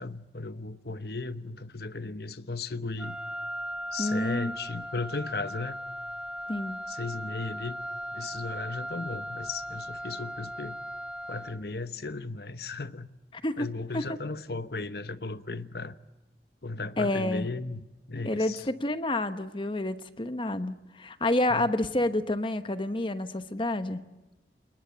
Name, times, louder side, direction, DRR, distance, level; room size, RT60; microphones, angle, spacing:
voice 1, 0.0-3.2 3.9-5.8 6.9-7.8 8.1-10.8 11.3-13.1 13.6-15.9 16.6-18.6 21.5-21.7, left 3 dB, 60° left, 1.0 m, -36 dB
Wind instrument woodwind instrument, 3.0-11.7, equal, 5° right, 1.0 m, -38 dB
voice 2, 4.0-4.5 6.5-6.8 13.4-13.7 13.9-14.2 17.0-17.5 18.3-24.0, left 1 dB, 30° left, 1.1 m, -29 dB
29.0 x 20.0 x 9.1 m
head